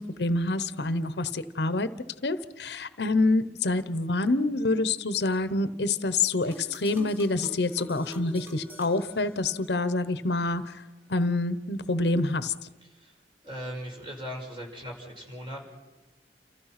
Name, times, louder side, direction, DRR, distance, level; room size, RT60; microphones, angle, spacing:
voice 1, 0.0-1.9 2.2-10.8 11.1-12.5, left 2 dB, 75° left, 13 dB, 1.0 m, -27 dB
sound 1, 6.5-10.0, equal, 15° right, 2.8 m, -45 dB
voice 2, 12.8-13.2 13.4-15.6, equal, 30° right, 0 dB, 5.7 m, -39 dB
29.5 x 15.0 x 5.9 m, 1.1 s
head